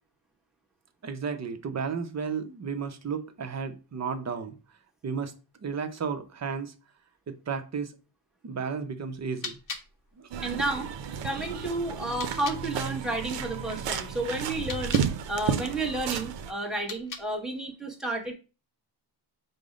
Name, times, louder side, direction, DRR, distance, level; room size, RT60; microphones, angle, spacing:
voice 1, 1.0-4.6 5.0-5.3 5.6-6.7 7.3-7.9 8.4-9.6 10.2-10.3 11.3-11.6, right 5 dB, 40° right, 0.6 m, -33 dB
sound 1, 9.1-12.7 14.5-15.2 16.7-17.5, left 4 dB, 45° left, 0.8 m, -42 dB
sound 2, 10.3-16.5, right 8 dB, 80° right, 0.6 m, -32 dB
voice 2, 10.4-10.9 11.2-15.0 15.3-18.3, right 2 dB, ahead, 1.0 m, -31 dB
5.2 x 2.1 x 4.9 m
wide cardioid pair, 145°, 43 cm